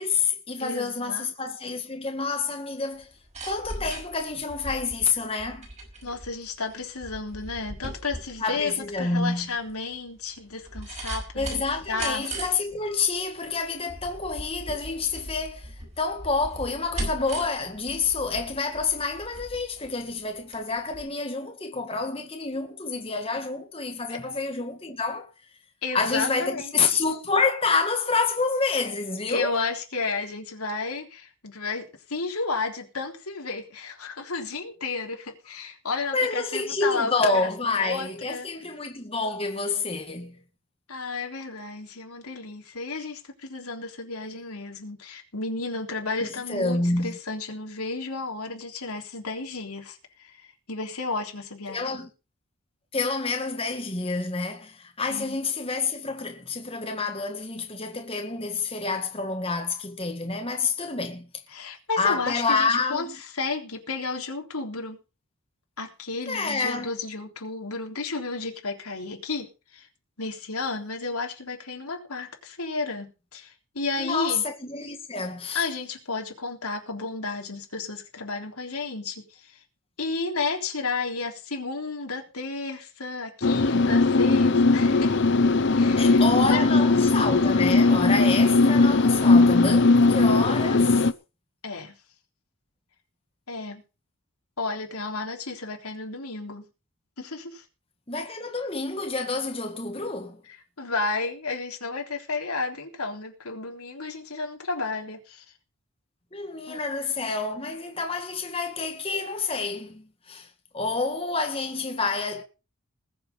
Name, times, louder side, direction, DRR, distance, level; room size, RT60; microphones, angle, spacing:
voice 1, 0.0-3.1 3.4-5.7 8.4-9.5 11.3-25.3 25.9-29.5 36.1-40.4 46.2-47.2 51.7-52.1 52.9-61.3 62.0-63.2 66.3-66.9 74.0-75.7 85.9-91.0 98.1-100.4 106.3-110.5 110.7-112.4, left 4 dB, 25° left, 1.8 m, -28 dB
voice 2, 0.6-1.3 6.0-12.2 24.1-24.2 25.8-26.7 29.3-38.5 40.9-51.9 55.1-55.4 61.5-63.1 63.3-65.0 65.8-69.9 70.2-74.4 75.5-79.6 80.0-85.2 85.7-86.2 86.5-86.7 91.6-92.0 93.5-93.8 94.6-96.7 97.2-97.6 100.8-105.4 106.7-106.8, left 3 dB, 90° left, 3.6 m, -32 dB
sound 1, 3.0-20.6 20.9-21.0, right 1 dB, 30° right, 5.3 m, -39 dB
sound 2, 83.4-91.1, left 3 dB, 55° left, 0.8 m, -19 dB
20.0 x 7.3 x 5.4 m
head